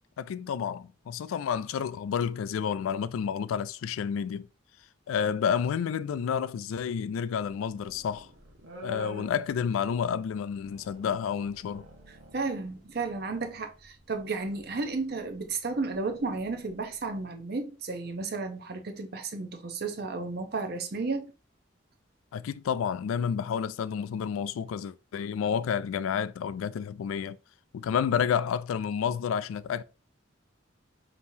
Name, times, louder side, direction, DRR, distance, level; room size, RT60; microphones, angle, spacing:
voice 1, 0.2-4.5 5.1-8.3 8.8-11.9 22.3-27.4 27.7-29.8, left 7 dB, 90° left, 0.3 m, -30 dB
sound 1, 7.1-17.2, right 1 dB, 65° right, 1.0 m, -51 dB
voice 2, 12.3-21.3, right 3 dB, 50° right, 0.7 m, -33 dB
5.4 x 2.9 x 2.7 m
head